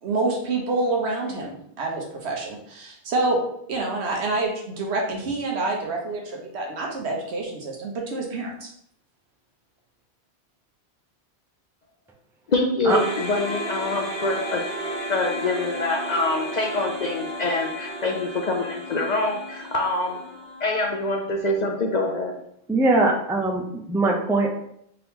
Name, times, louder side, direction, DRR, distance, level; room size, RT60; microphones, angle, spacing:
voice 1, 0.0-3.4 3.7-8.7, right 2 dB, 80° right, 0 dB, 1.2 m, -27 dB
voice 2, 12.5-14.6 15.1-20.2 20.6-22.4, left 2 dB, 55° left, 1 dB, 0.5 m, -25 dB
sound 1, 12.9-21.2, equal, 40° right, 1.2 m, -33 dB
voice 3, 22.7-23.6 23.9-24.5, right 2 dB, 5° right, 0 dB, 0.3 m, -21 dB
3.7 x 2.9 x 3.5 m, 0.72 s
omnidirectional pair, 1.1 m